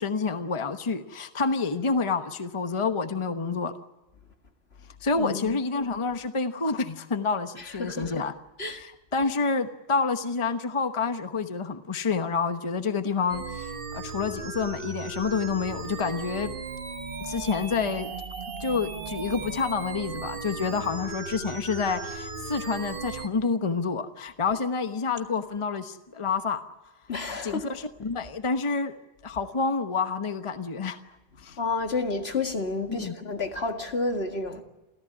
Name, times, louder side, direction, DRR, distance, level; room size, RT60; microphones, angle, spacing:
voice 1, 0.0-3.7 5.0-8.3 8.6-16.6 17.2-18.1 18.6-26.6 27.4-29.0 29.2-31.0 31.4-31.6 32.9-33.2, left 4 dB, 30° left, 1.0 m, -28 dB
voice 2, 5.1-5.6 7.6-8.3 8.6-8.8 27.1-27.7 31.6-34.6, left 3 dB, 70° left, 2.2 m, -30 dB
sound 1, 13.3-23.3, right 4 dB, 55° right, 1.4 m, -36 dB
29.0 x 14.5 x 9.7 m
omnidirectional pair, 1.1 m